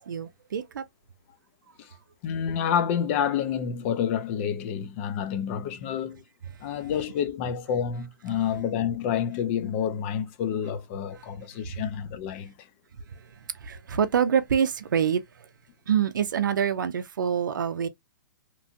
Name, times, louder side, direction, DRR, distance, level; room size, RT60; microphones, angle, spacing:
voice 1, 0.1-0.8 11.7-11.8 13.4-15.5 15.9-17.9, right 8 dB, 75° right, 0.5 m, -26 dB
voice 2, 2.2-6.2 6.6-12.7, left 8 dB, 40° left, 0.5 m, -28 dB
3.0 x 2.4 x 2.5 m
hypercardioid pair, 130°, 11 cm